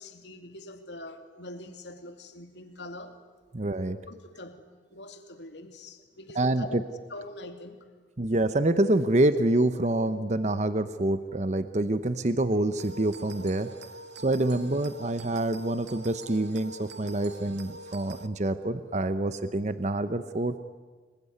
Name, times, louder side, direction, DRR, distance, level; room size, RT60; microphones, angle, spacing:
voice 1, 0.0-3.2 4.0-6.8 7.1-7.9 14.3-14.5, left 2 dB, 70° left, 5 dB, 2.6 m, -44 dB
voice 2, 3.5-4.0 6.3-6.8 8.2-13.7 14.2-20.5, right 1 dB, 40° right, 11 dB, 0.8 m, -26 dB
sound 1, 12.8-18.3, right 3 dB, 65° right, 1.4 m, -45 dB
26.5 x 22.0 x 9.7 m, 1.4 s
head